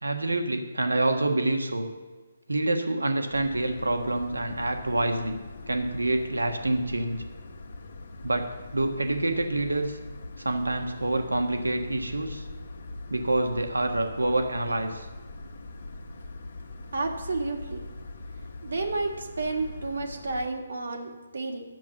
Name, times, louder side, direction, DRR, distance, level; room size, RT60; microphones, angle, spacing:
voice 1, 0.0-1.9 2.5-5.4 5.7-7.2 8.2-10.0 10.4-12.4 13.1-15.1, right 2 dB, 85° right, 6 dB, 1.4 m, -27 dB
sound 1, 3.3-20.5, left 2 dB, 60° left, 1.4 m, -42 dB
voice 2, 16.9-17.8 18.6-21.6, right 3 dB, 65° right, 4 dB, 1.8 m, -31 dB
10.5 x 7.2 x 7.1 m, 1.3 s
figure-of-eight pair, 140°, 0 cm